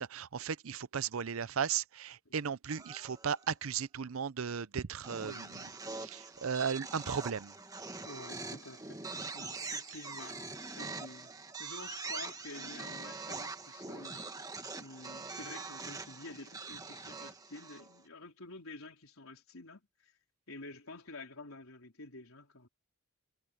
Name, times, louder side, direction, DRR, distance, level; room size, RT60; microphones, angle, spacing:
voice 1, 0.0-5.6 5.9-7.5, right 7 dB, 80° right, 0.6 m, -36 dB
sound 1, 2.7-3.5 5.0-18.0, right 3 dB, 15° right, 1.7 m, -43 dB
voice 2, 5.2-5.7 8.0-9.1 9.3-10.4 10.8-11.3 11.6-14.5 14.8-20.1 20.5-22.7, left 2 dB, 80° left, 4.2 m, -49 dB
head